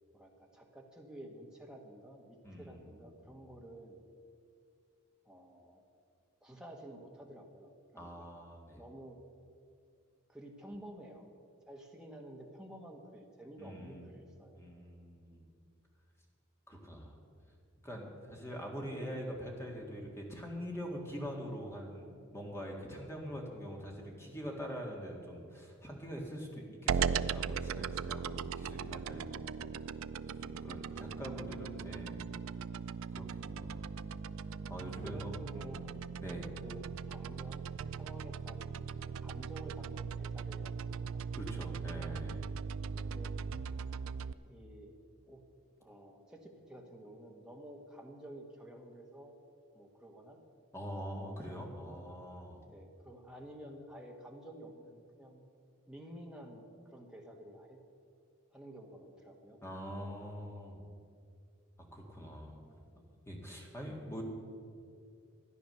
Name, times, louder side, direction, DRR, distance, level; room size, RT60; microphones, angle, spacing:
voice 1, 0.1-4.0 5.2-5.8 6.4-8.3 8.7-9.2 10.3-11.2 11.7-14.6 30.9-31.1 31.3-31.5 32.0-32.1 35.0-36.2 36.6-40.7 41.0-41.2 42.9-43.3 44.4-45.0 45.3-45.4 45.8-49.4 49.7-50.4 51.1-51.4 52.7-55.4 55.9-57.8 58.5-59.7 62.6-62.8, right 1 dB, 5° right, 0 dB, 1.3 m, -51 dB
voice 2, 2.4-2.8 8.0-8.8 13.6-14.0 14.5-15.4 16.7-17.1 17.8-29.6 30.3-32.2 33.1-34.0 34.7-35.7 36.2-36.5 41.4-42.5 50.7-52.6 59.6-60.8 61.9-62.6 63.3-64.2, equal, 10° left, -1 dB, 2.0 m, -44 dB
sound 1, 26.9-44.3, right 6 dB, 70° right, 0.4 m, -39 dB
14.0 x 9.9 x 6.8 m, 2.3 s
head